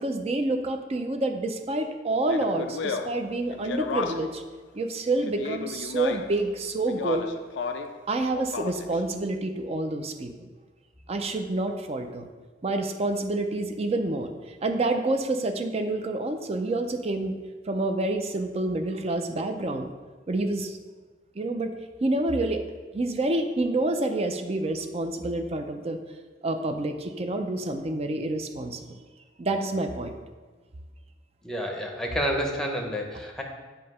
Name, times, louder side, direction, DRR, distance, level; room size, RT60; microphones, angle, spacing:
voice 1, 0.0-4.4 4.7-7.3 8.1-10.3 11.1-12.3 12.6-17.3 17.6-19.9 20.3-20.8 21.4-21.7 22.0-22.6 22.9-26.0 26.4-29.0 29.4-30.2, right 2 dB, 35° right, 6 dB, 0.5 m, -28 dB
Speech, 2.2-4.4 5.2-6.4 6.9-8.0 8.3-9.0, left 5 dB, 80° left, 0.4 m, -33 dB
voice 2, 31.4-33.4, equal, 5° left, 1 dB, 0.7 m, -29 dB
7.4 x 2.8 x 5.4 m, 1.3 s
head